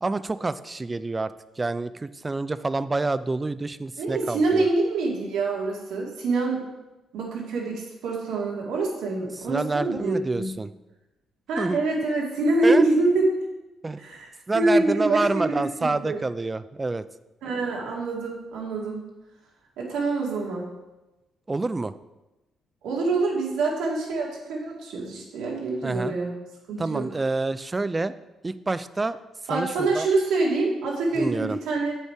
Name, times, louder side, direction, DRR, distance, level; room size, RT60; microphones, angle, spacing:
voice 1, 0.0-4.7 9.4-10.7 11.6-11.8 12.6-12.8 13.8-14.0 14.5-17.0 21.5-21.9 25.8-26.2 26.8-28.1 28.4-29.2 29.5-30.1 31.2-31.6, right 3 dB, 20° right, 14 dB, 0.4 m, -27 dB
voice 2, 4.0-6.7 7.1-10.5 11.5-13.4 14.0-14.3 14.5-16.2 17.4-19.1 19.8-20.6 22.8-26.3 26.7-27.1 29.5-31.9, right 2 dB, 85° right, -2 dB, 2.0 m, -25 dB
8.4 x 5.5 x 4.6 m, 1.0 s
cardioid pair, 90°, 0 cm